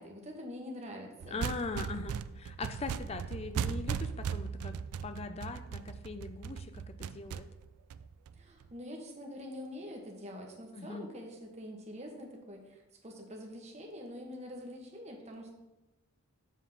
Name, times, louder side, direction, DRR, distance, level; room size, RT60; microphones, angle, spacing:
voice 1, 0.0-1.4 8.4-15.5, equal, 30° right, 1 dB, 1.1 m, -45 dB
sound 1, 1.2-8.6, right 7 dB, 85° right, 0.3 m, -38 dB
voice 2, 1.3-4.8 5.0-7.5 10.7-11.1, left 3 dB, 25° left, 9 dB, 0.4 m, -41 dB
7.3 x 3.6 x 5.8 m, 1.0 s
head